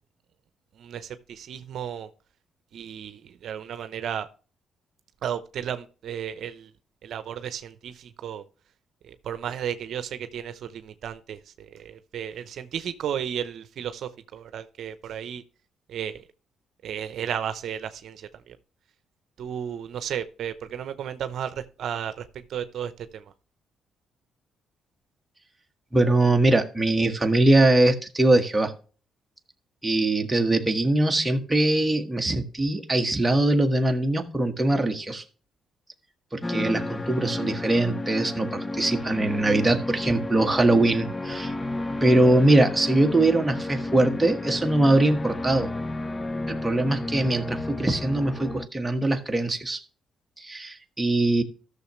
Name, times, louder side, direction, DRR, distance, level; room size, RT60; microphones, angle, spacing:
voice 1, 0.8-2.1 2.7-4.3 5.2-6.7 7.0-8.4 9.0-15.4 15.9-16.2 16.8-18.6 19.4-23.2, right 9 dB, 70° right, 0.7 m, -34 dB
voice 2, 25.9-28.7 29.8-35.2 36.3-41.5 42.0-45.7 46.5-49.8 50.4-51.4, right 2 dB, 15° right, 1.4 m, -22 dB
sound 1, 36.4-48.7, left 2 dB, 20° left, 0.6 m, -32 dB
14.0 x 6.6 x 3.1 m
cardioid pair, 90°, 0 cm